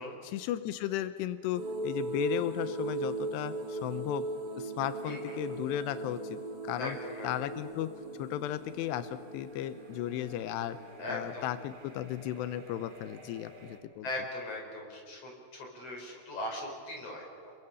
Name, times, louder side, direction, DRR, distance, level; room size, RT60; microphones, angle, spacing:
voice 1, 0.0-4.3 4.6-7.0 7.2-7.9 8.2-10.8 11.1-14.1, left 12 dB, 85° left, 12 dB, 2.5 m, -35 dB
sound 1, 1.5-13.8, right 2 dB, 25° right, 2.5 m, -40 dB
voice 2, 5.0-5.6 6.8-7.3 11.0-11.5 14.0-17.5, left 1 dB, 30° left, 1 dB, 5.7 m, -40 dB
29.5 x 22.0 x 6.9 m, 2.5 s
omnidirectional pair, 5.8 m